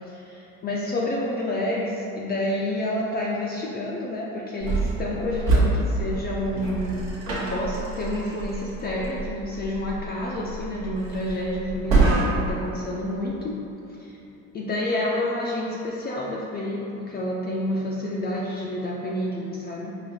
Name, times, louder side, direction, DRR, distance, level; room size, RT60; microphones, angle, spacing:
voice 1, 0.0-7.0 7.3-13.6 14.0-14.2 14.5-19.9, left 1 dB, 30° left, -4 dB, 0.4 m, -29 dB
sound 1, 4.6-12.7, right 2 dB, 80° right, 1.1 m, -26 dB
4.8 x 2.5 x 2.7 m, 2.9 s
cardioid pair, 115°, 33 cm